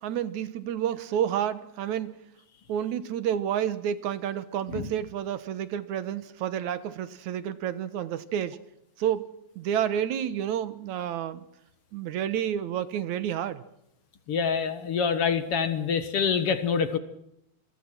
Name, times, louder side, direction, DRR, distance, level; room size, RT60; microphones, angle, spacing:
voice 1, 0.0-2.1 2.7-8.6 9.0-9.2 9.6-11.4 11.9-13.6, right 10 dB, 75° right, 14 dB, 2.5 m, -30 dB
voice 2, 14.3-17.0, left 6 dB, 55° left, 11 dB, 2.2 m, -26 dB
27.5 x 21.5 x 6.1 m, 0.79 s
omnidirectional pair, 3.4 m